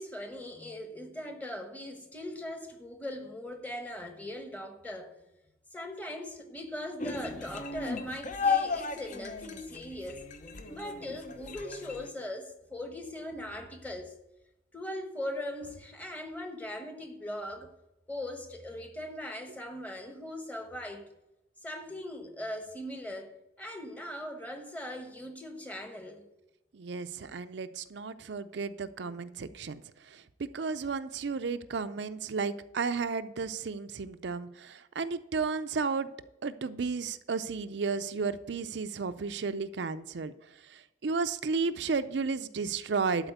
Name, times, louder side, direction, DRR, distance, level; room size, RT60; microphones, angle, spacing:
voice 1, 0.0-5.2 5.7-10.3 10.7-14.1 14.7-17.7 18.1-21.1 21.6-26.2, left 1 dB, 10° left, 1.2 m, -40 dB
sound 1, 7.0-12.1, left 5 dB, 45° left, 0.8 m, -34 dB
voice 2, 26.7-29.8 30.1-36.1 36.4-40.3 40.7-43.3, right 4 dB, 70° right, 0.5 m, -33 dB
12.0 x 4.4 x 8.0 m
head